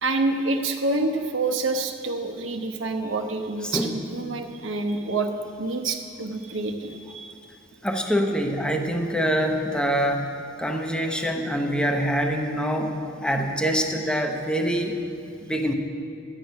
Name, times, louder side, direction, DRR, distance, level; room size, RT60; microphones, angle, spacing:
voice 1, 0.0-7.3, right 2 dB, 80° right, 5 dB, 1.0 m, -27 dB
voice 2, 7.8-14.9 15.4-15.7, equal, 5° left, 3 dB, 0.8 m, -25 dB
12.0 x 9.2 x 5.5 m, 2.4 s
head